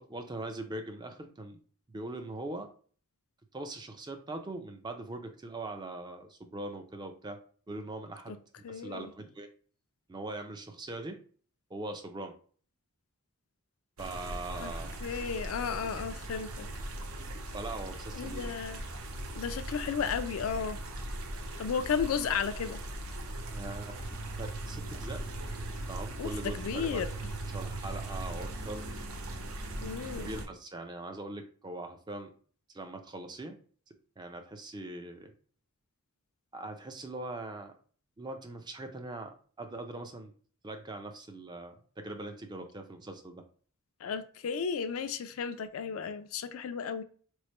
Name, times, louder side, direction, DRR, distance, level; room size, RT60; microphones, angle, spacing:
voice 1, 0.0-1.6 1.9-2.7 3.5-7.4 7.7-8.4 8.7-9.5 10.1-11.2 11.7-12.3 14.0-14.9 17.5-18.5 23.5-25.2 25.9-27.0 27.5-28.9 29.8-32.3 32.7-33.6 33.9-35.3 36.5-37.7 38.2-40.3 40.6-43.4, right 2 dB, 20° right, 6 dB, 0.4 m, -41 dB
voice 2, 8.6-9.1 14.6-14.7 15.0-16.7 18.1-18.8 19.3-20.8 21.6-22.8 26.2-27.1 29.8-30.3 44.0-47.0, left 6 dB, 65° left, 10 dB, 0.4 m, -34 dB
sound 1, 14.0-30.5, right 1 dB, 75° right, 0.6 m, -39 dB
3.1 x 2.1 x 4.1 m, 0.44 s
head